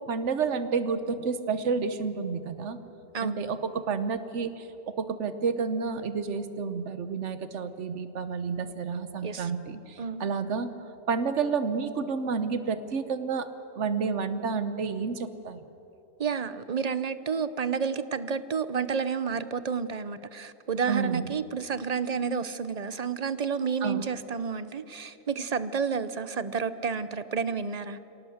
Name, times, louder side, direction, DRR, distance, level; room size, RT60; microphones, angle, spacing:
voice 1, 0.1-2.8 3.2-10.7 11.1-13.5 13.8-15.6 20.9-21.3 23.8-24.0, right 5 dB, 85° right, 11 dB, 1.3 m, -30 dB
voice 2, 3.1-3.4 9.2-9.5 10.0-10.2 16.2-28.0, right 6 dB, 40° right, 14 dB, 0.8 m, -30 dB
25.5 x 18.0 x 7.9 m, 2.9 s
omnidirectional pair, 1.2 m